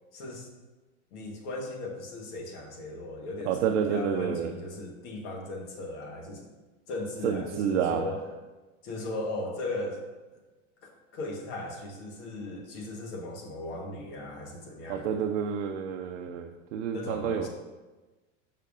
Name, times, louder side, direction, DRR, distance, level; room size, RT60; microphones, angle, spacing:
voice 1, 0.1-0.5 1.1-6.5 6.9-8.2 8.8-10.0 10.8-15.1 16.9-17.5, left 2 dB, 65° left, 2 dB, 1.3 m, -37 dB
voice 2, 3.5-4.5 7.2-8.0 14.9-17.5, right 8 dB, 70° right, 3 dB, 0.6 m, -29 dB
6.5 x 5.8 x 2.5 m, 1.2 s
hypercardioid pair, 100°, 37 cm